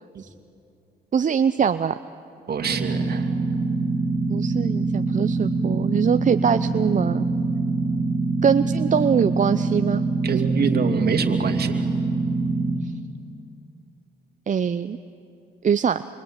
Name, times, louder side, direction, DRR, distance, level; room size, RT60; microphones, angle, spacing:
voice 1, 1.1-2.0 4.3-7.3 8.4-10.0 10.3-10.4 14.5-15.0 15.6-16.0, right 7 dB, 45° right, 11 dB, 0.7 m, -22 dB
voice 2, 2.5-3.3 10.2-11.8, right 6 dB, 60° right, 5 dB, 2.5 m, -25 dB
sound 1, 2.6-12.8, right 3 dB, 80° right, 2.7 m, -24 dB
27.5 x 24.5 x 9.0 m, 2.8 s
supercardioid pair, 65°, 19 cm